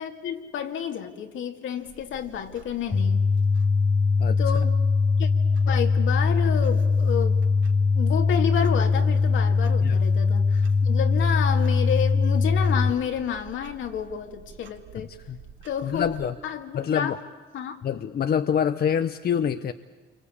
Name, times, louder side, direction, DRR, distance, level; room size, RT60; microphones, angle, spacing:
voice 1, 0.0-3.3 4.4-4.8 5.2-5.3 5.7-7.4 7.9-15.1 15.6-16.1 16.4-17.2 17.5-17.8, left 8 dB, 75° left, 5 dB, 2.3 m, -30 dB
Clock, 1.8-16.3, right 6 dB, 75° right, 2.5 m, -48 dB
sound 1, 2.9-12.9, left 4 dB, 25° left, 0.8 m, -21 dB
voice 2, 15.0-15.4 15.8-16.3 16.7-17.2 17.8-19.7, left 8 dB, 50° left, 10 dB, 0.8 m, -26 dB
28.5 x 24.0 x 8.6 m, 1.3 s
cardioid pair, 90°, 20 cm